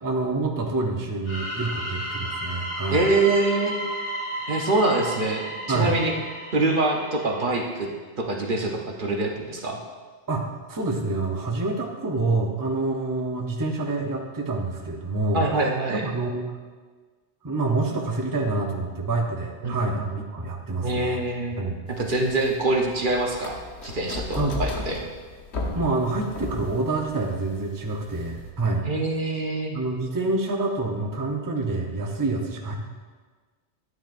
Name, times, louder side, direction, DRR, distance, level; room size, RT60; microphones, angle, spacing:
voice 1, 0.0-3.1 4.4-4.5 5.7-5.9 10.3-15.4 15.9-16.6 17.4-21.2 21.6-21.8 24.4-24.6 25.7-28.9 29.7-32.7, right 3 dB, 20° right, 0 dB, 0.8 m, -27 dB
sound 1, 1.2-7.9, right 1 dB, 55° left, 2.0 m, -33 dB
voice 2, 2.9-3.8 4.5-6.1 6.5-7.9 8.2-9.8 15.3-16.1 19.6-20.0 20.8-21.6 21.9-25.0 28.8-29.8, right 2 dB, 50° right, 1 dB, 1.1 m, -25 dB
sound 2, 21.9-28.5, left 2 dB, 85° left, 1.4 m, -35 dB
12.0 x 9.3 x 2.6 m, 1.4 s
omnidirectional pair, 1.1 m